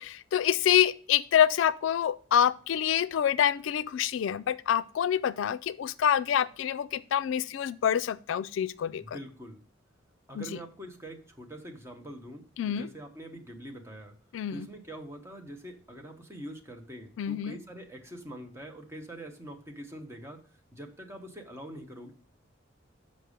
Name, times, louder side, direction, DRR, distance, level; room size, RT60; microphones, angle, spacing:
voice 1, 0.0-9.2 10.4-10.5 12.6-12.9 14.3-14.7 17.2-17.5, left 9 dB, 75° left, 0.3 m, -26 dB
voice 2, 9.0-9.6 10.3-14.1 14.5-20.4 20.7-22.1, right 1 dB, 15° right, 1.0 m, -44 dB
6.8 x 5.3 x 5.0 m
head